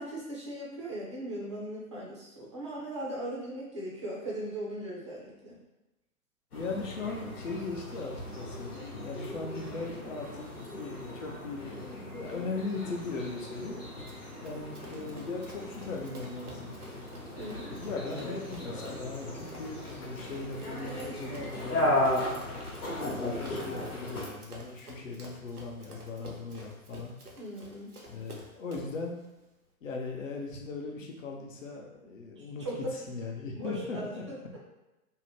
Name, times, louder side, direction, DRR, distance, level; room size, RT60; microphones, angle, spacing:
voice 1, 0.0-5.6 17.4-17.8 27.4-27.9 32.4-33.0 33.5-34.4, right 1 dB, 20° right, -5 dB, 0.4 m, -38 dB
sound 1, 6.5-24.3, left 1 dB, 80° left, 1.0 m, -36 dB
voice 2, 6.5-13.7 14.4-16.7 17.8-22.4 23.0-27.1 28.1-29.2 29.8-32.7 33.1-34.2, left 3 dB, 60° left, 0 dB, 0.7 m, -39 dB
Run, 14.1-29.0, right 1 dB, 90° right, 0.7 m, -51 dB
2.7 x 2.0 x 3.0 m, 0.99 s
figure-of-eight pair, 115°, 44 cm